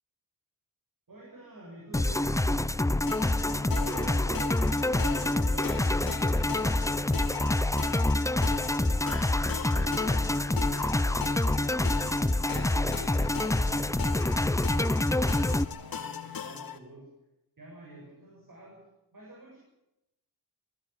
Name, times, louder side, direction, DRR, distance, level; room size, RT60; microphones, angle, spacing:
voice 1, 1.1-2.7 6.7-11.3 11.6-17.1 17.6-19.6, right 2 dB, 55° right, -1 dB, 7.7 m, -50 dB
sound 1, 1.9-15.6, left 1 dB, 10° left, 0.7 m, -26 dB
sound 2, 3.1-16.8, left 7 dB, 60° left, 2.6 m, -39 dB
voice 2, 3.6-6.1, right 3 dB, 80° right, -2 dB, 7.1 m, -44 dB
20.5 x 16.0 x 8.6 m, 0.88 s
cardioid pair, 60°, 39 cm